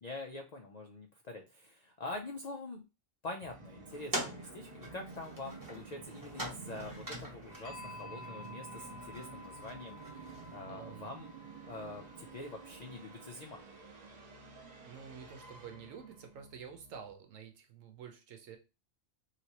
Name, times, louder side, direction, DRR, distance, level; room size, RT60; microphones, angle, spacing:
voice 1, 0.0-2.8 3.2-10.0 10.5-11.3 11.6-13.6, left 2 dB, 80° left, 3 dB, 0.3 m, -45 dB
Musical instrument, 3.4-17.1, right 4 dB, 50° right, 0.5 m, -52 dB
sound 1, 3.9-10.6, right 1 dB, 20° right, 0.9 m, -44 dB
sound 2, 7.5-13.3, left 1 dB, 60° left, 0.7 m, -52 dB
voice 2, 10.1-11.1 14.8-18.6, right 7 dB, 85° right, 4 dB, 1.1 m, -50 dB
3.2 x 2.9 x 2.9 m, 0.29 s
omnidirectional pair, 1.3 m